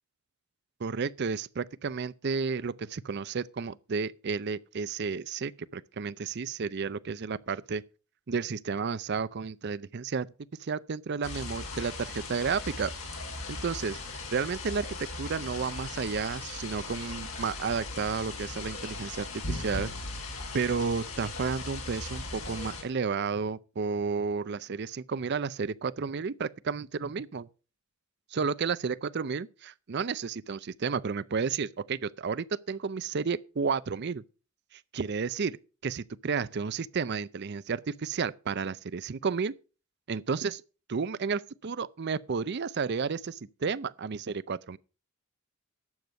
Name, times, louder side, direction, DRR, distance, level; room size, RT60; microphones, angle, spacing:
voice 1, 0.8-7.8 8.3-10.3 10.6-12.9 13.5-19.9 20.5-27.5 28.3-34.2 34.7-35.6 35.8-39.5 40.1-40.6 40.9-44.8, right 5 dB, 50° right, 0.5 m, -32 dB
sound 1, 11.2-22.8, left 2 dB, 80° left, 3.8 m, -38 dB
12.0 x 7.9 x 5.4 m
head